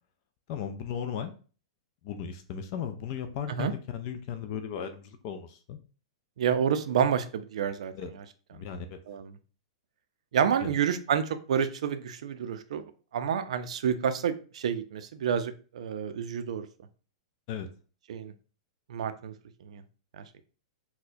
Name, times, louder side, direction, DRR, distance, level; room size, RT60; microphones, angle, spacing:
voice 1, 0.5-1.3 2.0-5.8 7.9-8.1 8.5-9.0 10.6-10.7 17.5-17.7, left 8 dB, 40° left, 7 dB, 0.4 m, -36 dB
voice 2, 6.4-7.9 9.1-9.3 10.3-12.8 13.1-16.7 18.1-18.3 18.9-19.3 19.6-19.8 20.2-20.3, right 8 dB, 75° right, 10 dB, 0.4 m, -29 dB
4.2 x 2.1 x 2.6 m, 0.38 s
hypercardioid pair, 150°, 3 cm